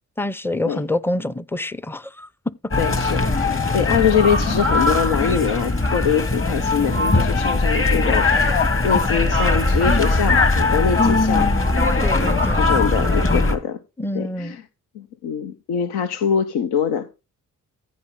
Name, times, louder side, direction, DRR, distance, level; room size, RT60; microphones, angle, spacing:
voice 1, 0.2-2.3 11.0-11.7 12.0-12.6 14.0-14.6, left 2 dB, 5° left, 0.6 m, -25 dB
sound 1, 2.7-13.6, left 3 dB, 35° left, 2.1 m, -20 dB
voice 2, 2.8-11.5 12.2-13.8 14.1-14.6 14.9-17.1, left 7 dB, 80° left, 0.8 m, -23 dB
14.5 x 5.2 x 3.7 m
supercardioid pair, 40°, 38 cm